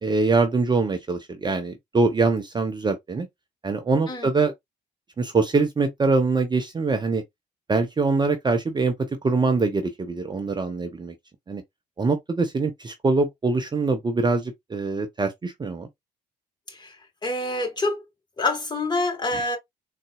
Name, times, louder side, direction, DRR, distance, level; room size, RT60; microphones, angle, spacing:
voice 1, 0.0-3.3 3.6-4.5 5.2-7.2 7.7-8.9 9.2-11.1 11.5-11.6 12.0-15.9 19.3-19.5, right 3 dB, 20° right, 0.6 m, -23 dB
voice 2, 17.2-18.0 18.4-19.6, left 2 dB, 20° left, 1.4 m, -26 dB
3.8 x 2.3 x 2.3 m
figure-of-eight pair, 50°, 20 cm